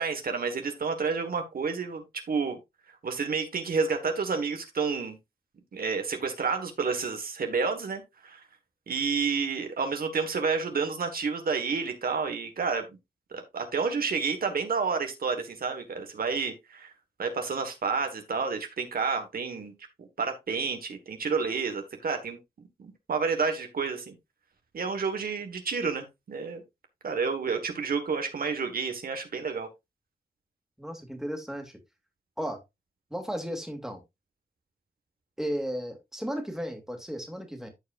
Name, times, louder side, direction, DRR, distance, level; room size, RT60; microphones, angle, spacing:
voice 1, 0.0-2.6 3.0-5.2 5.7-8.4 8.9-12.8 13.3-16.9 17.2-19.7 20.0-22.4 22.8-24.1 24.7-26.6 27.0-29.7, right 5 dB, 70° right, 6 dB, 1.6 m, -30 dB
voice 2, 30.8-31.8 32.4-32.6 33.1-34.0 35.4-37.7, equal, 5° right, 4 dB, 2.3 m, -34 dB
14.0 x 4.8 x 2.5 m, 0.21 s
wide cardioid pair, 95°, 16 cm